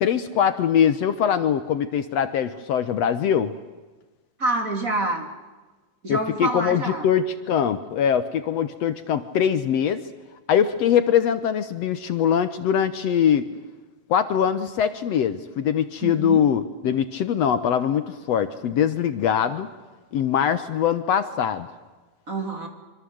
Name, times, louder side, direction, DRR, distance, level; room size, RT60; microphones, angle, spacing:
voice 1, 0.0-3.5 6.1-10.0 10.5-13.5 14.1-19.7 20.1-21.7, left 8 dB, 65° left, 11 dB, 2.1 m, -22 dB
voice 2, 4.4-5.3 6.0-7.1 16.0-16.4 22.3-22.7, right 2 dB, 30° right, 4 dB, 3.3 m, -27 dB
26.5 x 25.5 x 7.9 m, 1.2 s
omnidirectional pair, 3.3 m